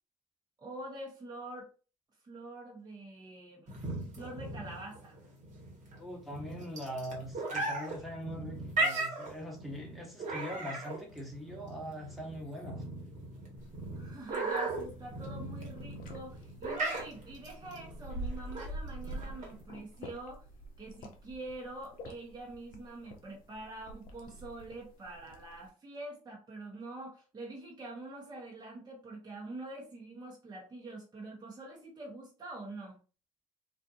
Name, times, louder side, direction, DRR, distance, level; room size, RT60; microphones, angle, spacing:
voice 1, 0.6-1.7 2.2-3.8 4.2-5.1 13.9-20.4 20.8-33.0, right 2 dB, 25° right, -2 dB, 1.0 m, -45 dB
sound 1, 3.7-19.6, right 3 dB, 45° right, 1.3 m, -37 dB
voice 2, 6.0-12.8, equal, ahead, -1 dB, 1.1 m, -42 dB
sound 2, 13.6-25.7, right 1 dB, 55° left, 0.6 m, -47 dB
2.5 x 2.5 x 2.4 m, 0.34 s
hypercardioid pair, 60°, 17 cm